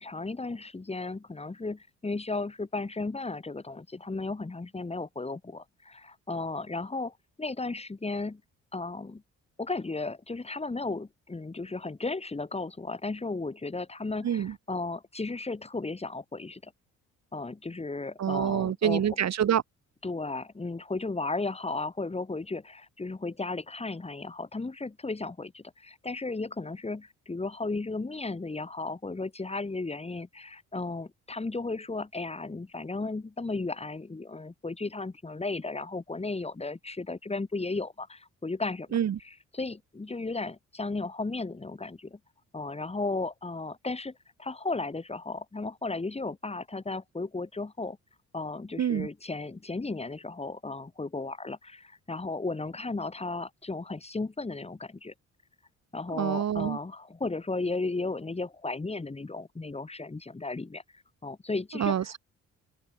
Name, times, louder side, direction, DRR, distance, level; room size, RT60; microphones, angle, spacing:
voice 1, 0.0-8.4 8.7-9.2 9.6-16.7 17.3-19.0 20.0-39.0 39.2-42.2 42.5-48.0 48.3-55.1 55.9-60.8 61.2-62.1, left 3 dB, 20° left, 4.3 m, -35 dB
voice 2, 14.2-14.5 18.2-19.6 38.9-39.2 48.8-49.1 56.1-56.8 61.7-62.2, right 9 dB, 60° right, 4.9 m, -27 dB
open air
cardioid pair, 90°, 30 cm